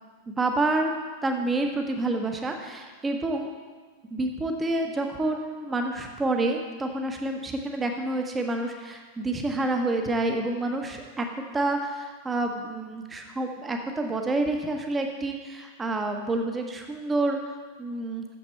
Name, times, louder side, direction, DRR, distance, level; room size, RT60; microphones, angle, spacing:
voice 1, 0.3-0.9 1.2-3.5 4.1-11.3 11.5-18.3, right 2 dB, 15° right, 4 dB, 1.0 m, -28 dB
8.6 x 7.0 x 4.4 m, 1.4 s
figure-of-eight pair, 90°, 0 cm